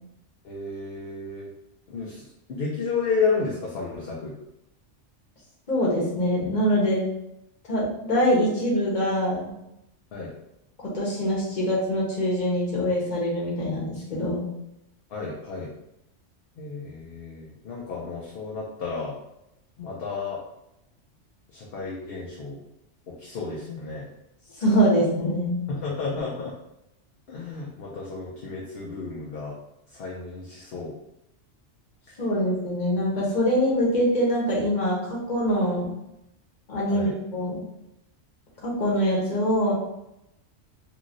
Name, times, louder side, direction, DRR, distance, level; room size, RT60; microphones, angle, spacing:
voice 1, 0.4-1.5 1.9-4.3 10.1-10.3 15.1-15.7 16.6-19.2 19.8-20.4 21.5-22.6 23.1-24.1 25.7-26.5 27.3-29.5 29.9-30.9 36.9-37.1, left 4 dB, 60° left, -4 dB, 0.8 m, -32 dB
voice 2, 5.7-7.0 7.7-9.5 10.9-14.5 24.6-25.6 32.2-35.9 36.7-37.7 38.6-39.7, equal, 40° left, -5 dB, 1.0 m, -24 dB
3.0 x 2.7 x 2.5 m, 0.85 s
omnidirectional pair, 1.2 m